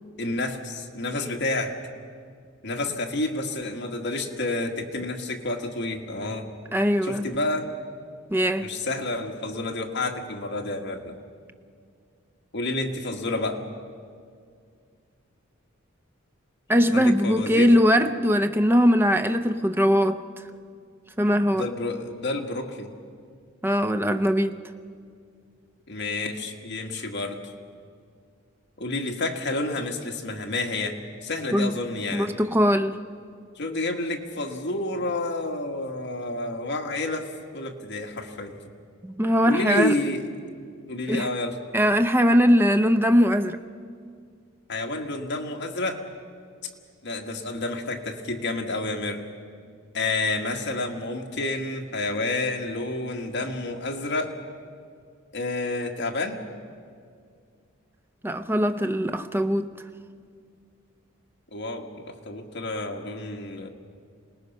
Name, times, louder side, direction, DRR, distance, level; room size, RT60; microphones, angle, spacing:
voice 1, 0.2-1.8 2.6-6.5 7.0-7.7 8.6-11.2 12.5-13.6 16.9-17.7 21.5-22.9 25.9-27.5 28.8-32.4 33.5-38.6 39.4-40.3 40.9-41.6 44.7-46.0 47.0-49.3 49.9-54.4 55.3-56.4 61.5-63.7, left 2 dB, 60° left, 2 dB, 1.7 m, -29 dB
voice 2, 6.7-7.3 8.3-8.7 16.7-20.2 21.2-21.7 23.6-24.5 31.5-31.7 32.1-33.0 39.0-39.9 41.1-41.3 41.7-43.6 58.2-59.7, equal, 10° right, 9 dB, 0.6 m, -21 dB
26.5 x 19.0 x 5.5 m, 2.2 s
head